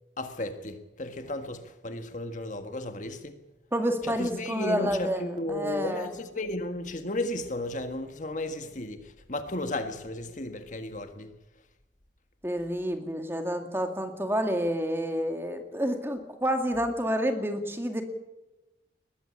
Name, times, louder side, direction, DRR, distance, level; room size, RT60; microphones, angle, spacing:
voice 1, 0.2-3.4 4.0-11.3, left 1 dB, 40° left, 1.7 m, -34 dB
voice 2, 3.7-6.1 12.4-18.0, equal, 15° right, 2.1 m, -29 dB
21.0 x 15.0 x 8.6 m
head